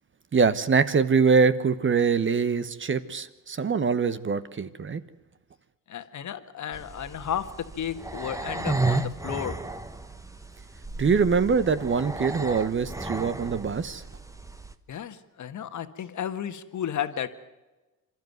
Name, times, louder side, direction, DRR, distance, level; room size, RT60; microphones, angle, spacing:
voice 1, 0.3-5.0 11.0-14.0, right 5 dB, 30° right, 14 dB, 1.2 m, -23 dB
voice 2, 5.9-9.6 14.9-17.3, left 9 dB, 45° left, 10 dB, 1.7 m, -33 dB
sound 1, 6.7-14.8, right 2 dB, 10° right, 1.3 m, -33 dB
26.5 x 12.5 x 9.5 m, 1.2 s
supercardioid pair, 80°, 40 cm